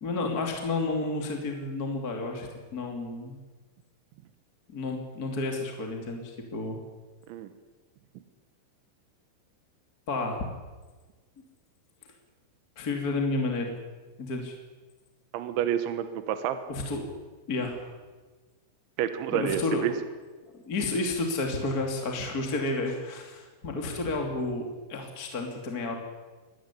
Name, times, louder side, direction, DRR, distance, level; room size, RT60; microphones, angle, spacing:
voice 1, 0.0-3.4 4.7-6.8 10.1-10.5 12.8-13.7 14.2-14.6 16.7-17.1 17.5-17.9 19.3-19.8 20.5-25.9, left 2 dB, 25° left, 2 dB, 2.0 m, -31 dB
voice 2, 15.3-16.6 19.0-19.9, right 10 dB, 75° right, 9 dB, 3.3 m, -29 dB
23.0 x 17.5 x 9.9 m, 1.3 s
omnidirectional pair, 5.9 m